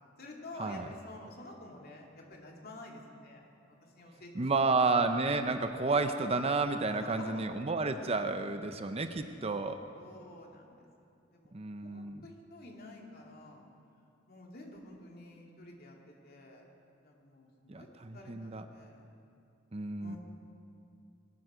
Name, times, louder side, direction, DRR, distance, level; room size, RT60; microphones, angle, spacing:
voice 1, 0.2-3.4 3.8-5.2 7.2-7.5 9.9-11.6 11.8-13.6 14.3-16.7 17.0-17.9 18.1-19.1 20.0-20.2, left 1 dB, 50° left, 0 dB, 2.6 m, -50 dB
voice 2, 4.3-9.8 11.5-12.2 17.7-18.7 19.7-20.2, right 3 dB, 30° right, 8 dB, 0.7 m, -31 dB
22.0 x 13.0 x 5.1 m, 2.5 s
head